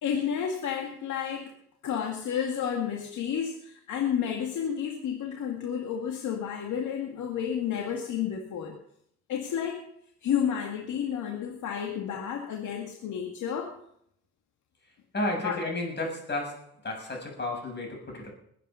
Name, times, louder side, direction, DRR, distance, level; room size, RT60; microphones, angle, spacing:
voice 1, 0.0-1.5 1.8-8.7 9.3-9.8 10.2-13.7 15.4-15.6, left 8 dB, 75° left, 2 dB, 2.2 m, -31 dB
voice 2, 15.1-18.3, left 2 dB, 35° left, 1 dB, 7.4 m, -32 dB
21.5 x 9.2 x 5.7 m, 0.70 s
cardioid pair, 90°, 30 cm